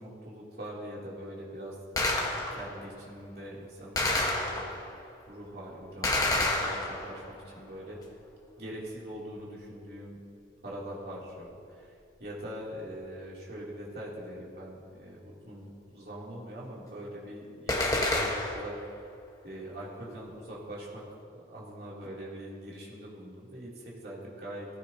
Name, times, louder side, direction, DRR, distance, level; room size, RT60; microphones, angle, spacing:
voice 1, 0.0-1.7 2.1-4.7 5.3-8.0 8.6-10.2 10.6-18.8 19.4-21.0 21.3-24.7, equal, 55° right, -6 dB, 3.3 m, -43 dB
Gunshot gunfire, 2.0-2.8 4.0-4.9 6.0-7.3 17.7-18.8, left 2 dB, 20° left, 1.5 m, -29 dB
19.0 x 15.0 x 3.0 m, 2.5 s
head